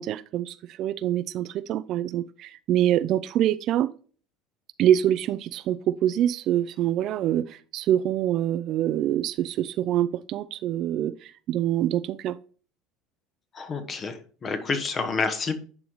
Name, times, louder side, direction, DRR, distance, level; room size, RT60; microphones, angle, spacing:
voice 1, 0.0-3.9 4.8-12.4, right 11 dB, 55° right, 0.4 m, -25 dB
voice 2, 13.5-15.6, left 4 dB, 35° left, 1.3 m, -29 dB
10.5 x 3.9 x 3.0 m
hypercardioid pair, 85°, 0 cm